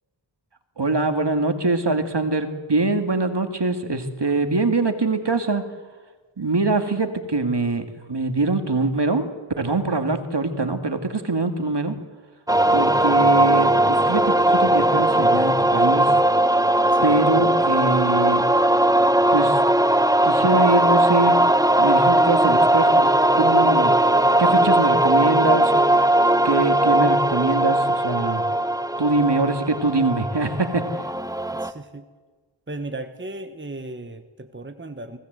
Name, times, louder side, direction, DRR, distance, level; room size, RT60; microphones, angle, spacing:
voice 1, 0.8-5.7 6.4-9.3 9.6-12.0 12.7-16.2 17.0-18.5 19.3-19.6 20.2-21.4 21.8-23.1 23.3-24.0 24.4-25.7 26.4-28.4 29.0-30.9, right 3 dB, 55° right, 7 dB, 2.1 m, -23 dB
sound 1, 12.5-31.7, right 1 dB, 5° right, 0.9 m, -19 dB
voice 2, 31.6-32.0 32.7-35.2, right 2 dB, 25° right, 8 dB, 1.2 m, -36 dB
23.5 x 17.0 x 8.1 m, 1.4 s
wide cardioid pair, 45°, 50 cm